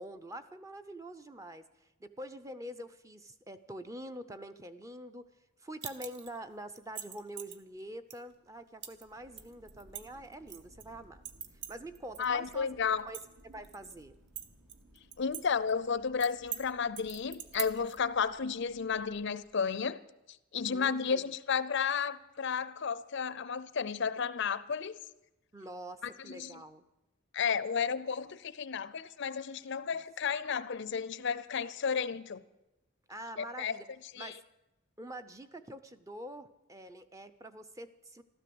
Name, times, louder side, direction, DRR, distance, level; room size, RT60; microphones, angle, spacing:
voice 1, 0.0-1.6 2.0-5.3 5.6-11.2 11.7-12.8 13.1-13.2 13.5-14.1 20.7-21.3 25.5-26.8 29.9-30.0 33.1-33.9 34.2-34.4 35.0-38.2, right 1 dB, 15° right, 0.5 m, -45 dB
sound 1, 5.8-6.4 6.8-7.6 8.1-8.2 8.8-9.0 9.4-10.8 11.2-12.3 12.5-12.6 13.0-13.9 14.4-15.4 15.7-15.8 16.2-16.6 17.0-18.0, right 8 dB, 50° right, 0.9 m, -42 dB
Thunder, 8.9-19.7, right 1 dB, 75° right, 4.1 m, -61 dB
voice 2, 12.2-13.1 15.2-20.0 20.5-25.0 26.3-26.6 27.3-32.4 33.4-33.8 34.1-34.3, left 6 dB, 55° left, 0.5 m, -32 dB
13.0 x 13.0 x 7.8 m
head